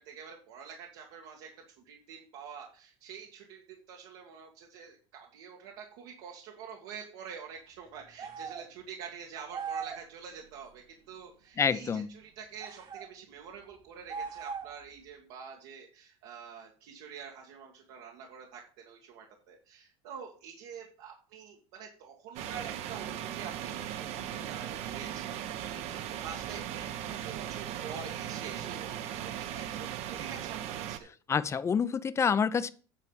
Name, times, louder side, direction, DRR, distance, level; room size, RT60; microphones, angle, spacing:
voice 1, 0.0-1.5 1.9-31.1, right 7 dB, 75° right, 2.0 m, -47 dB
sound 1, 8.2-8.7 9.5-10.1 12.6-13.1 14.1-14.9, right 6 dB, 35° right, 1.4 m, -39 dB
voice 2, 11.6-12.1 31.3-32.7, left 6 dB, 20° left, 0.6 m, -27 dB
sound 2, 22.4-31.0, right 10 dB, 55° right, 1.0 m, -38 dB
9.8 x 4.5 x 7.1 m
cardioid pair, 135°, 13 cm